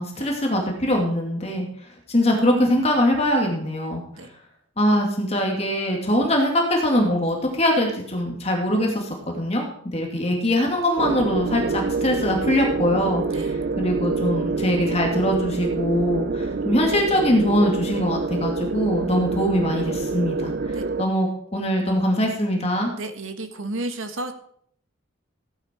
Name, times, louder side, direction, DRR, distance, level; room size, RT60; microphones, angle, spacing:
voice 1, 0.0-1.7 2.1-4.0 4.8-9.1 9.3-9.6 9.9-20.5 21.0-22.9, equal, 30° left, 1 dB, 2.5 m, -22 dB
sound 1, 11.0-21.0, right 4 dB, 50° right, 0.5 m, -26 dB
voice 2, 23.0-24.3, right 2 dB, 75° right, 7 dB, 1.6 m, -32 dB
16.0 x 10.0 x 4.6 m, 0.66 s
head